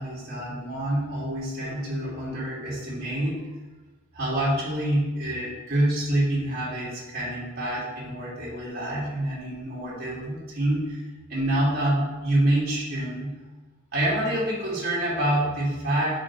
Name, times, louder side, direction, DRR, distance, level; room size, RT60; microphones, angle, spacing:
voice 1, 0.0-3.5 4.1-11.0 11.3-13.4 13.9-16.2, right 1 dB, 50° right, -7 dB, 2.0 m, -27 dB
8.7 x 5.0 x 2.9 m, 1.2 s
head